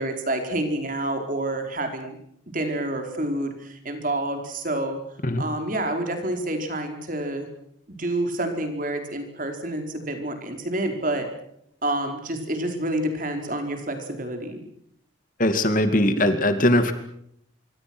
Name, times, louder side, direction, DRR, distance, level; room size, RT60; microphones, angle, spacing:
voice 1, 0.0-2.2 2.5-5.0 5.4-7.5 7.9-11.3 11.8-14.6, right 1 dB, 40° right, 5 dB, 4.8 m, -28 dB
voice 2, 15.4-16.9, left 1 dB, 40° left, 9 dB, 2.4 m, -20 dB
26.0 x 24.0 x 6.3 m, 0.71 s
head